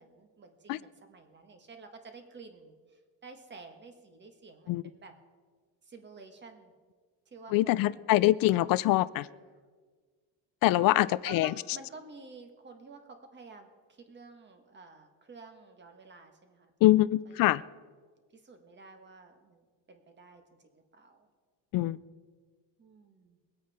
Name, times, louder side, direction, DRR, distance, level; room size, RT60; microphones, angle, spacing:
voice 1, 0.0-5.1 5.9-6.7 7.3-7.9 10.7-16.7 17.3-17.5 18.3-20.4 20.7-21.3 22.8-23.4, right 4 dB, 25° right, 1.5 m, -51 dB
voice 2, 7.5-9.3 10.6-11.5 16.8-17.6 21.7-22.0, left 16 dB, 50° left, 0.4 m, -24 dB
22.5 x 8.6 x 4.3 m
cardioid pair, 145°, 44 cm